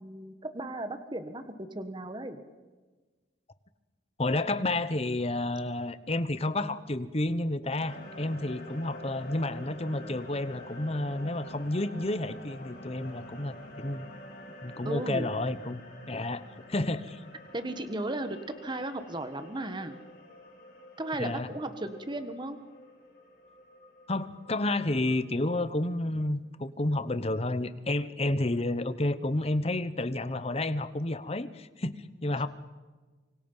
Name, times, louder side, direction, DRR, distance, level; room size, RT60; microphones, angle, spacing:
voice 1, 0.0-2.4 14.8-15.3 17.5-20.0 21.0-22.6, right 1 dB, 25° right, 9 dB, 1.5 m, -35 dB
voice 2, 4.2-14.1 14.6-15.8 16.1-16.4 16.7-17.2 21.2-21.5 24.1-32.5, left 2 dB, 35° left, 13 dB, 1.0 m, -30 dB
sound 1, 7.8-25.2, left 1 dB, 50° left, 4.9 m, -48 dB
26.5 x 24.0 x 5.6 m, 1.3 s
head